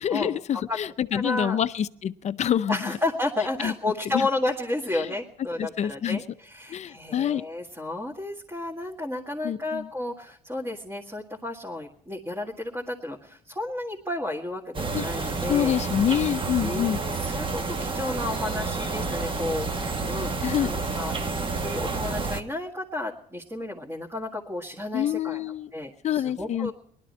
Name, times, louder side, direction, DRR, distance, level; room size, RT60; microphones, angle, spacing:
voice 1, 0.0-3.0 3.6-3.7 4.1-4.3 4.9-5.1 5.6-6.2 6.7-7.5 9.4-9.9 14.9-15.0 15.5-17.0 20.4-20.8 24.9-25.7 26.0-26.7, left 9 dB, 40° left, 13 dB, 0.6 m, -26 dB
voice 2, 1.1-1.6 2.7-15.7 16.6-25.4 25.7-26.7, left 2 dB, 15° right, -2 dB, 1.9 m, -32 dB
sound 1, 14.7-22.4, right 3 dB, 30° right, 1.2 m, -29 dB
19.5 x 12.0 x 4.3 m, 0.66 s
cardioid pair, 110°, 17 cm